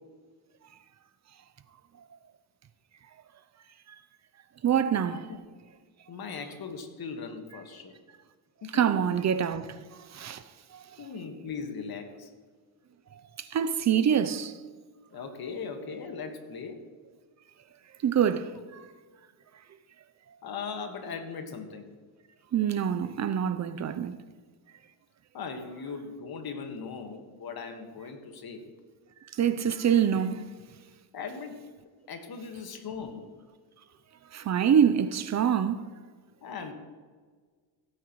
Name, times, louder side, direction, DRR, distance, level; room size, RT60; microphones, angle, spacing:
voice 1, 4.6-5.2 8.7-9.7 10.1-10.4 13.5-14.5 18.0-18.8 22.5-24.2 29.4-30.5 34.3-35.8, right 8 dB, 35° right, 0.6 m, -25 dB
voice 2, 6.1-7.9 8.6-9.1 11.0-12.3 15.1-16.8 18.6-18.7 20.4-21.9 23.0-23.1 25.3-28.7 30.3-30.4 31.1-33.3 36.4-36.7, left 5 dB, 45° left, 1.7 m, -39 dB
16.0 x 8.9 x 3.1 m
cardioid pair, 95°, 49 cm